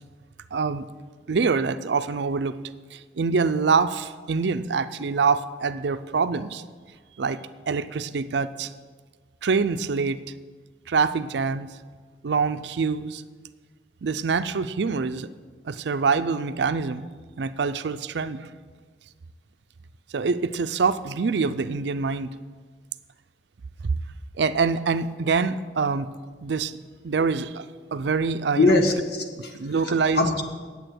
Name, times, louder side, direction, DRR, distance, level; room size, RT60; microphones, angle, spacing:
voice 1, 0.5-0.9 1.3-2.6 2.9-6.6 7.2-8.7 9.4-10.2 10.9-11.7 12.2-13.2 14.0-15.3 15.7-17.0 17.4-18.5 20.1-22.3 23.8-23.9 24.4-26.1 26.4-26.8 27.0-27.6 27.9-28.8 29.6-30.2, right 5 dB, 75° right, 13 dB, 0.5 m, -25 dB
voice 2, 28.6-30.4, left 2 dB, 60° left, 4 dB, 1.3 m, -23 dB
9.0 x 8.3 x 7.9 m, 1.5 s
head